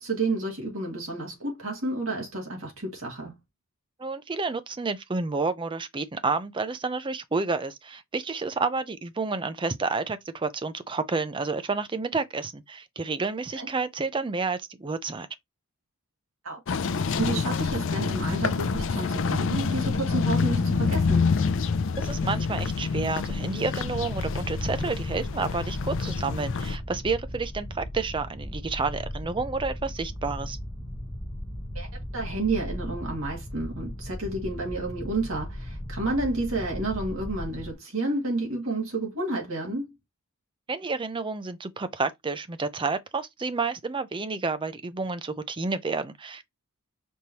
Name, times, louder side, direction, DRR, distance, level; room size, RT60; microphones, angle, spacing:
voice 1, 0.0-3.4 13.5-13.7 16.4-16.6 17.0-21.3 31.7-39.9, right 2 dB, 65° right, 2.0 m, -30 dB
voice 2, 4.0-15.3 22.0-30.6 40.7-46.5, right 4 dB, 20° right, 0.5 m, -30 dB
sound 1, 16.7-26.8, left 4 dB, 55° left, 0.4 m, -27 dB
sound 2, 23.8-37.7, equal, 25° left, 1.0 m, -37 dB
5.3 x 3.1 x 2.8 m
head